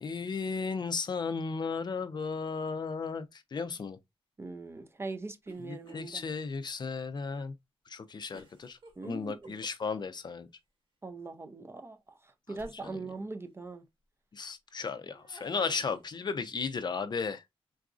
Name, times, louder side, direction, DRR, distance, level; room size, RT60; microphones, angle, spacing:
voice 1, 0.0-4.0 5.6-7.5 7.9-8.8 9.0-10.5 12.8-13.0 14.3-17.4, left 5 dB, 45° left, 0.4 m, -35 dB
voice 2, 4.4-6.2 9.0-9.5 11.0-13.8, right 3 dB, 25° right, 0.4 m, -41 dB
sound 1, 5.5-6.2 6.6-6.7 8.3-10.1 12.6-13.1 15.1-16.3, right 1 dB, 55° right, 1.1 m, -54 dB
3.9 x 2.4 x 2.4 m
wide cardioid pair, 110°, 10 cm